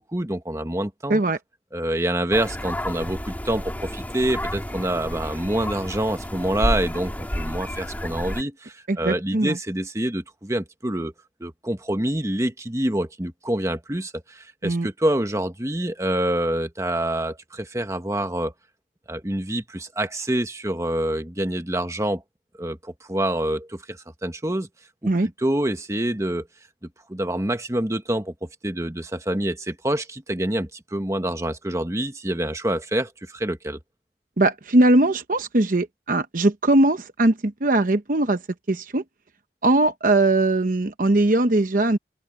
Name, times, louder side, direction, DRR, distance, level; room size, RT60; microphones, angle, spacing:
voice 1, 0.0-1.2 1.7-11.1 11.4-18.5 19.1-22.2 22.6-24.7 25.0-25.1 25.4-26.5 27.1-33.8, right 1 dB, 15° right, 1.5 m, -26 dB
sound 1, 2.3-8.4, equal, 10° left, 2.7 m, -30 dB
voice 2, 8.9-9.6 14.6-14.9 25.1-25.3 34.4-38.4 38.7-39.0 39.6-42.0, right 2 dB, 50° right, 0.9 m, -20 dB
open air
head